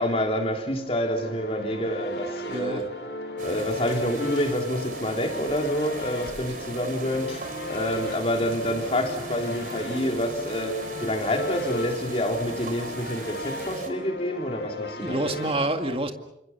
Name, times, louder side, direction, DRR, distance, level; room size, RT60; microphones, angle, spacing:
voice 1, 0.0-2.8 3.4-15.3, left 1 dB, 35° left, 3.4 m, -28 dB
sound 1, 0.7-15.5, equal, 70° left, 5.9 m, -35 dB
voice 2, 2.5-2.9 15.0-16.1, right 1 dB, 30° right, 2.1 m, -27 dB
sound 2, 3.4-13.9, right 3 dB, 50° right, 3.8 m, -40 dB
28.5 x 25.5 x 6.0 m
head